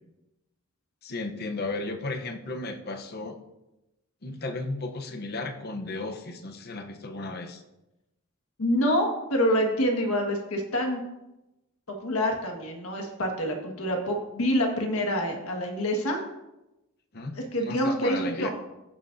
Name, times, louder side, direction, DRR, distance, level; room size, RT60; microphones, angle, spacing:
voice 1, 1.0-3.4 4.2-7.6 17.1-18.5, left 2 dB, 45° left, 5 dB, 0.8 m, -34 dB
voice 2, 8.6-11.0 11.9-16.2 17.3-18.5, equal, 70° left, 3 dB, 1.6 m, -26 dB
14.5 x 6.3 x 2.6 m, 0.96 s
head